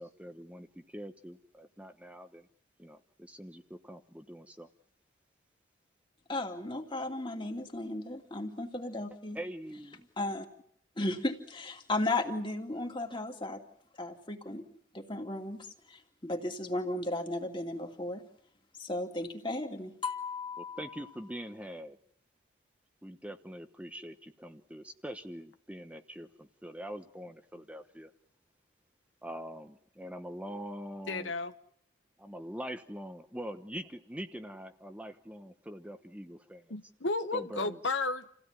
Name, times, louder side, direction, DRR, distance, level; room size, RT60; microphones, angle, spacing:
voice 1, 0.0-2.5 2.8-4.7 9.3-10.1 20.6-22.0 23.0-28.1 29.2-31.3 32.2-36.7 37.3-37.8, equal, 5° right, 1.0 m, -44 dB
voice 2, 6.3-9.4 10.2-10.5 11.0-13.6 14.0-14.6 14.9-18.2 18.8-20.8, left 2 dB, 25° left, 2.6 m, -35 dB
voice 3, 31.1-31.5 36.7-38.3, left 3 dB, 75° left, 1.2 m, -33 dB
29.0 x 16.5 x 9.7 m
head